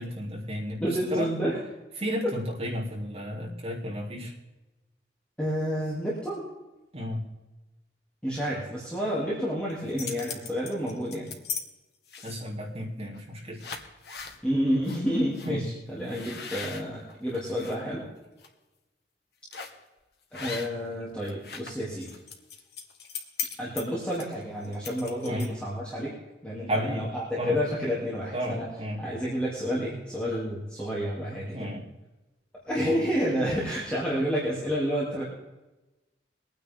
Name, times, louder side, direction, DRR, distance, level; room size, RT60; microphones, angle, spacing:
voice 1, 0.0-1.3 2.0-4.3 6.9-7.2 12.2-13.6 15.4-15.6 25.3-25.5 26.7-27.1 27.4-27.6 28.3-29.0 31.5-31.9, equal, 35° right, -4 dB, 3.4 m, -33 dB
voice 2, 0.8-1.6 5.4-6.5 8.2-11.4 14.4-18.1 20.3-22.2 23.6-26.1 26.4-28.7 29.0-31.7 32.7-35.2, equal, 5° left, -8 dB, 3.0 m, -30 dB
sound 1, 9.7-11.6 12.1-12.5 13.1-13.3 13.6-14.4 14.8-15.0 15.3-15.5 16.1-17.7 18.2-18.5 19.5-19.8 20.3-20.9 21.2-25.7, left 6 dB, 65° left, 1.6 m, -38 dB
22.5 x 9.5 x 3.8 m, 1.1 s
head